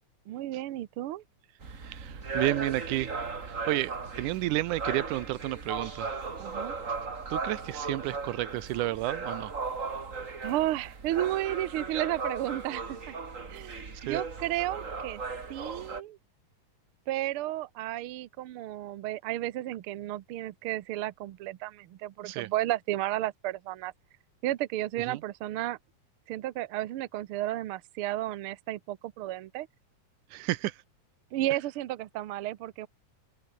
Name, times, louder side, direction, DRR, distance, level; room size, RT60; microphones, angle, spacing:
voice 1, 0.3-1.2 6.4-6.7 10.4-13.1 13.5-15.2 15.5-16.2 17.1-23.9 24.4-25.8 26.3-29.7 31.3-32.9, right 14 dB, 70° right, 1.4 m, -33 dB
sound 1, 1.6-16.0, right 4 dB, 25° right, 2.3 m, -37 dB
voice 2, 1.7-3.1 3.4-6.1 7.3-9.5 13.9-14.2 22.3-22.5 25.1-25.2 30.3-30.8, right 17 dB, 85° right, 2.3 m, -31 dB
open air
omnidirectional pair, 3.5 m